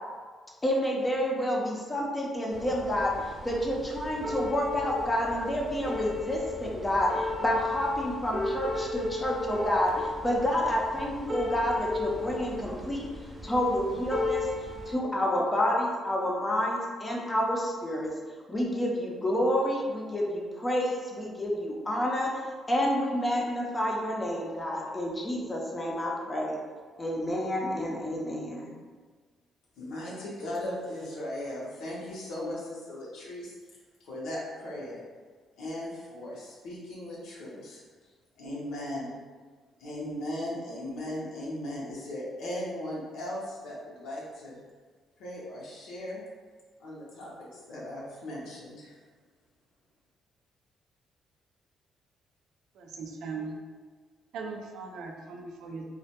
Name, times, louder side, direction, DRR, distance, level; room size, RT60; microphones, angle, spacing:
voice 1, 0.6-13.1 13.4-18.1 18.5-22.4 22.7-26.6 27.0-28.7, equal, 20° left, -2 dB, 0.5 m, -29 dB
sound 1, 2.5-14.9, left 2 dB, 35° right, 0.6 m, -36 dB
voice 2, 29.8-33.5 34.0-35.0 35.6-37.8 38.4-39.1 39.8-44.6 45.2-46.2 46.8-48.9, left 1 dB, 85° left, -6 dB, 0.6 m, -37 dB
voice 3, 52.8-53.6 54.3-55.8, right 4 dB, 80° right, 1 dB, 0.3 m, -39 dB
2.1 x 2.1 x 2.8 m, 1.5 s
cardioid pair, 90°, 0 cm